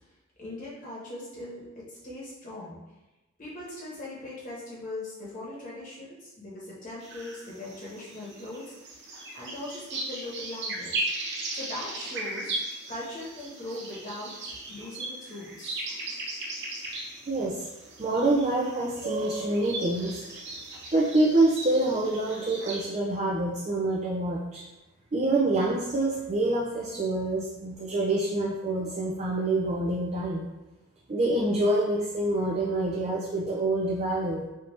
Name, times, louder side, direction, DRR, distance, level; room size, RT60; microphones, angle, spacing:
voice 1, 0.4-2.8 3.4-8.8 9.3-11.1 11.5-12.6 12.9-15.8, left 2 dB, 40° left, -6 dB, 1.4 m, -40 dB
sound 1, 7.0-22.9, right 2 dB, 55° right, 0.8 m, -37 dB
voice 2, 17.3-17.7 18.0-20.2 20.9-24.6 25.1-30.5 31.1-34.4, right 2 dB, 30° right, -4 dB, 0.5 m, -26 dB
3.5 x 2.7 x 4.2 m, 1.1 s
head